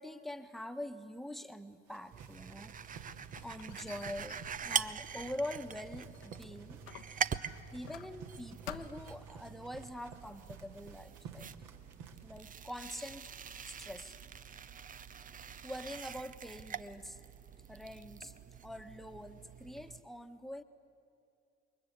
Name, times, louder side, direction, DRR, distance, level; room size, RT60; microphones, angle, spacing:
voice 1, 0.0-2.9 3.4-6.8 7.2-7.3 7.7-11.5 12.2-13.3 13.6-14.2 15.6-17.2 17.7-18.3 18.6-20.6, left 1 dB, ahead, 9 dB, 1.4 m, -44 dB
sound 1, 1.9-12.4, right 6 dB, 55° right, 2.1 m, -54 dB
sound 2, 2.1-20.0, right 7 dB, 20° right, 0.7 m, -43 dB
Squeak, 2.8-6.4 6.8-8.4 8.7-9.2, left 11 dB, 60° left, 1.2 m, -52 dB
28.0 x 22.0 x 8.3 m, 2.6 s
figure-of-eight pair, 60°, 38 cm